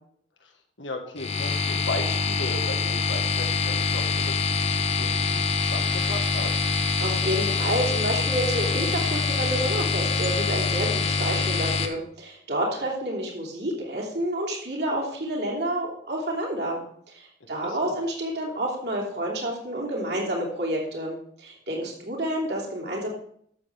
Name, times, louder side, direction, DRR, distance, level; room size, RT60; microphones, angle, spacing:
voice 1, 0.8-6.5 17.4-18.0, left 2 dB, 85° left, 3 dB, 1.6 m, -36 dB
sound 1, 1.2-11.9, left 4 dB, 35° left, 0.9 m, -25 dB
voice 2, 7.0-16.8 17.1-23.1, right 1 dB, 60° right, -2 dB, 3.0 m, -29 dB
12.0 x 7.6 x 3.6 m, 0.65 s
head